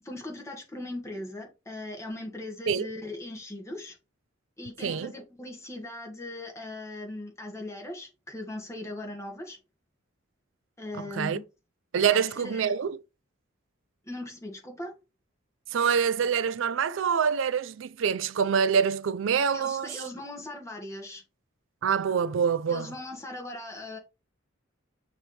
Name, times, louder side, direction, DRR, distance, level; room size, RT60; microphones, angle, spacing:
voice 1, 0.0-4.0 4.6-9.6 10.8-11.4 12.1-12.7 14.0-14.9 19.5-21.2 22.7-24.0, left 1 dB, 15° left, 1.9 m, -39 dB
voice 2, 11.9-13.0 15.7-20.0 21.8-22.9, right 7 dB, 70° right, 0.4 m, -25 dB
6.4 x 3.5 x 4.3 m
head